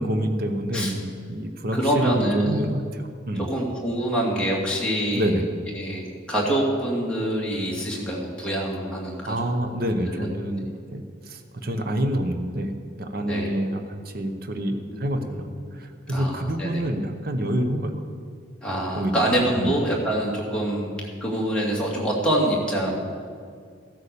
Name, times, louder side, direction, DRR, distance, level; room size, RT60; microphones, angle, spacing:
voice 1, 0.0-3.5 5.1-5.4 9.3-18.0 18.9-19.2 19.5-19.8, equal, 50° right, 6 dB, 1.0 m, -27 dB
voice 2, 1.7-2.5 3.5-5.3 5.8-6.0 6.3-9.3 10.1-10.3 10.6-10.7 13.3-13.5 14.9-15.4 16.1-16.8 18.6-20.9 21.2-22.9, right 1 dB, 5° left, -5 dB, 2.5 m, -25 dB
14.5 x 8.5 x 6.9 m, 2.2 s
head